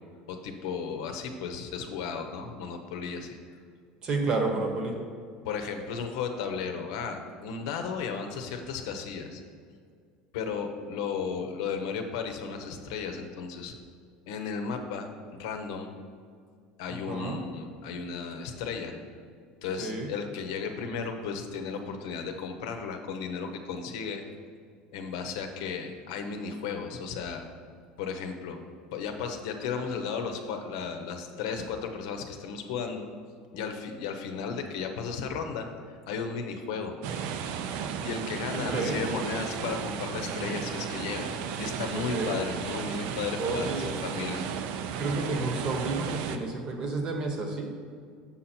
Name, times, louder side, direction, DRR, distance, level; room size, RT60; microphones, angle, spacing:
voice 1, 0.3-3.4 5.4-9.4 10.3-13.7 14.3-15.9 16.8-18.9 19.6-24.2 24.9-27.4 28.0-28.6 28.9-33.1 33.5-35.7 36.1-36.9 38.0-41.3 41.6-44.4, left 5 dB, 80° left, 5 dB, 0.8 m, -34 dB
voice 2, 4.0-5.0 16.9-17.4 19.8-20.1 38.6-39.0 41.9-42.3 43.4-43.9 45.0-47.7, right 3 dB, 30° right, 3 dB, 1.0 m, -30 dB
sound 1, 37.0-46.4, right 7 dB, 60° right, 0.5 m, -34 dB
7.3 x 5.8 x 4.3 m, 2.1 s
cardioid pair, 170°, 3 cm